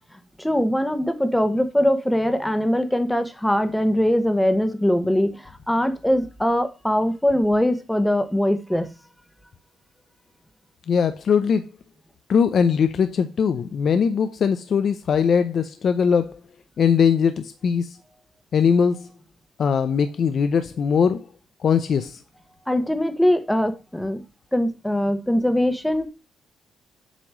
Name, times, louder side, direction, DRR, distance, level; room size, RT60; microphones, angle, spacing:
voice 1, 0.4-8.9 22.7-24.2 24.5-26.1, equal, 5° left, 1.1 m, -22 dB
voice 2, 10.9-11.6 12.3-16.4 16.8-17.9 18.5-19.1 19.6-21.2 21.6-22.2, left 6 dB, 55° left, 0.5 m, -20 dB
8.1 x 3.0 x 6.0 m
cardioid pair, 90°, 0 cm